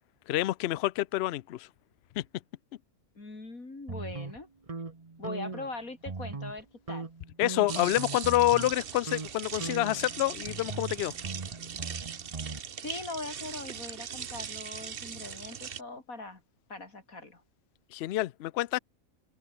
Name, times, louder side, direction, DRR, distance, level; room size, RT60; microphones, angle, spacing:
voice 1, 0.3-1.7 2.1-2.2 7.4-11.1 17.9-18.8, left 15 dB, 65° left, 0.7 m, -28 dB
voice 2, 3.1-4.5 5.2-7.1 12.8-16.4 16.7-17.4, left 3 dB, 80° left, 4.9 m, -41 dB
sound 1, 3.9-5.7 6.0-6.6 6.9-8.8 9.1-9.3 9.6-12.6, right 4 dB, 25° right, 1.2 m, -39 dB
sound 2, 7.7-15.8, right 7 dB, 45° right, 1.0 m, -40 dB
open air
omnidirectional pair, 1.4 m